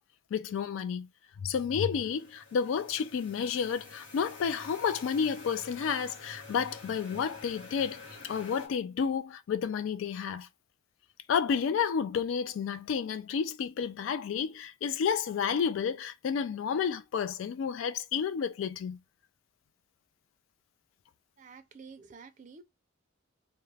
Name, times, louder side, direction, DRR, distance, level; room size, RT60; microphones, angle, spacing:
voice 1, 0.3-1.1 1.4-10.5 11.3-19.0, left 6 dB, 85° left, 0.3 m, -31 dB
sound 1, 1.9-8.7, left 3 dB, 60° left, 0.9 m, -49 dB
voice 2, 21.4-22.6, right 5 dB, 40° right, 0.4 m, -50 dB
2.3 x 2.1 x 3.2 m
head